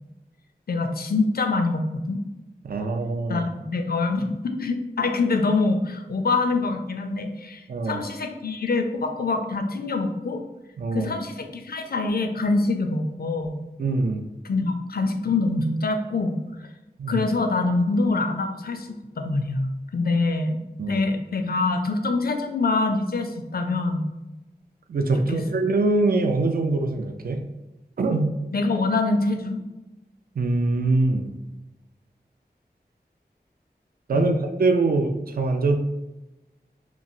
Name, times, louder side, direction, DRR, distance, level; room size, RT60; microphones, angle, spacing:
voice 1, 0.7-2.2 3.3-10.4 10.9-13.6 14.4-16.4 17.1-20.6 20.9-24.1 25.3-25.4 28.5-29.6 34.1-34.4, left 3 dB, 60° left, 5 dB, 0.4 m, -25 dB
voice 2, 2.6-3.5 7.7-8.0 10.8-11.2 13.8-14.3 17.0-17.3 20.8-21.0 24.9-27.4 28.0-28.4 30.4-31.3 34.1-35.8, right 3 dB, 60° right, 5 dB, 0.4 m, -23 dB
3.0 x 2.4 x 2.6 m, 1.0 s
wide cardioid pair, 55°, 18 cm